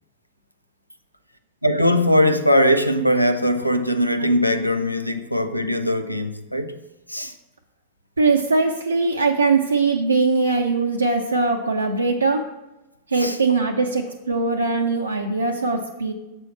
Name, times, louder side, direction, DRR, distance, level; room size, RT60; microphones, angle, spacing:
voice 1, 1.6-6.8 7.1-7.3 13.2-13.4, equal, 90° left, 0.4 m, -20 dB
voice 2, 8.2-12.4 13.1-16.1, right 3 dB, 80° right, 0.5 m, -21 dB
6.9 x 4.5 x 5.6 m
figure-of-eight pair, 90°, 0 cm